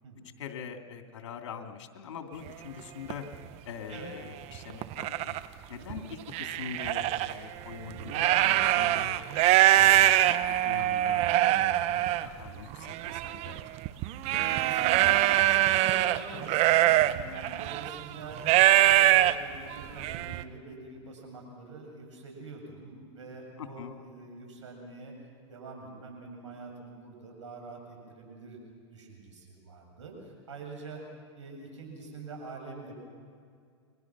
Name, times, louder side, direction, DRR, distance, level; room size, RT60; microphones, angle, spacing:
voice 1, 0.4-3.3 3.6-5.4 5.7-9.1 9.5-10.2 10.5-13.6 23.6-23.9, left 7 dB, 80° left, 4 dB, 2.7 m, -43 dB
sound 1, 2.5-2.6 3.1-3.3 4.0-4.1 4.5-5.4 5.9-7.3 7.9-20.4, right 15 dB, 45° right, 1.0 m, -23 dB
voice 2, 14.2-25.1 25.5-28.6 28.9-31.0 31.4-32.9, right 3 dB, 90° right, 2 dB, 7.7 m, -45 dB
30.0 x 22.5 x 6.1 m, 2.2 s
hypercardioid pair, 110°, 15 cm